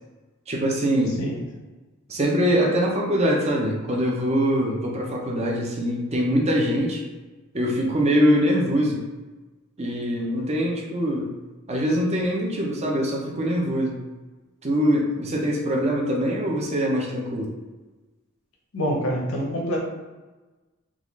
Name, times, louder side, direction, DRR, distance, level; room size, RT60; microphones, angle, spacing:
voice 1, 0.5-1.2 2.1-7.0 7.5-9.1 9.8-11.3 11.7-14.0 14.6-17.5, equal, 30° right, -1 dB, 0.6 m, -23 dB
voice 2, 18.7-19.8, equal, 85° left, -1 dB, 0.7 m, -26 dB
3.7 x 2.4 x 3.1 m, 1.2 s
head